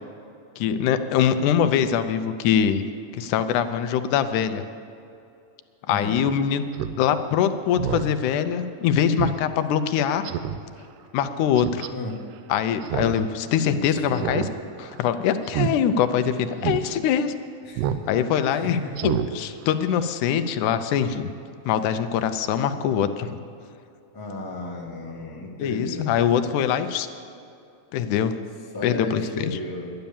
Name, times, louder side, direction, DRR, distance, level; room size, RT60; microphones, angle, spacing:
voice 1, 0.6-2.8 3.1-4.6 5.9-6.6 7.0-10.3 11.1-11.9 12.5-14.5 14.8-17.3 18.1-21.3 21.7-23.4 25.6-27.1 27.9-28.3 28.8-29.6, left 8 dB, 80° left, 9 dB, 2.0 m, -23 dB
voice 2, 5.9-6.2 11.9-12.2 13.7-14.4 17.6-17.9 18.5-18.8 24.1-26.1 28.7-29.9, left 2 dB, 35° left, -2 dB, 0.3 m, -34 dB
Speech synthesizer, 6.7-7.0 7.3-7.4 7.8-8.1 8.5-8.6 9.2-9.4 9.7-9.8 10.2-10.6 11.6-11.9 12.8-13.2 13.5-13.6 14.1-14.5 14.8-15.0 15.5-15.7 16.1-16.2 16.6-16.8 17.8-18.0 18.4-18.5 18.9-19.3 19.6-19.7, right 10 dB, 85° right, 2.2 m, -27 dB
11.5 x 10.5 x 7.0 m, 2.5 s
omnidirectional pair, 3.6 m